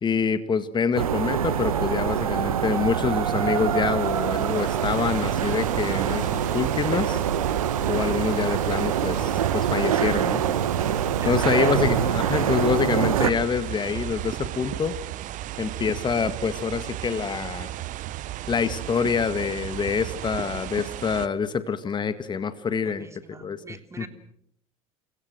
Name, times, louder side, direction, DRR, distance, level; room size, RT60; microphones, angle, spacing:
voice 1, 0.0-7.2 7.9-10.4 11.3-14.9 15.6-17.7 18.5-23.1 23.4-23.6 24.0-24.1, left 6 dB, 25° left, 12 dB, 1.8 m, -26 dB
sound 1, 0.9-13.3, right 9 dB, 75° right, 1.5 m, -25 dB
sound 2, 4.0-21.3, right 14 dB, 45° right, 1.2 m, -34 dB
voice 2, 11.1-11.7 22.8-24.1, right 3 dB, 15° right, 7 dB, 3.3 m, -42 dB
29.5 x 23.5 x 6.4 m, 0.69 s
figure-of-eight pair, 65°, 18 cm